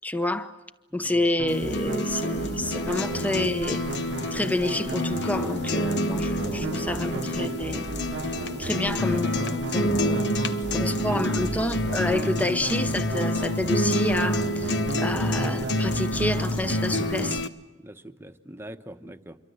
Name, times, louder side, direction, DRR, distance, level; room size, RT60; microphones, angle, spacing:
voice 1, 0.0-0.5 0.9-3.8 4.3-7.8 8.6-17.4, left 1 dB, 10° left, 0.9 m, -29 dB
voice 2, 0.9-1.3 5.6-7.2 8.6-9.0 10.5-11.5 17.8-19.4, right 1 dB, 15° right, 1.1 m, -41 dB
sound 1, 1.4-17.4, right 2 dB, 85° right, 1.0 m, -35 dB
sound 2, 1.5-17.5, left 1 dB, 75° left, 1.2 m, -28 dB
27.0 x 23.5 x 7.9 m
head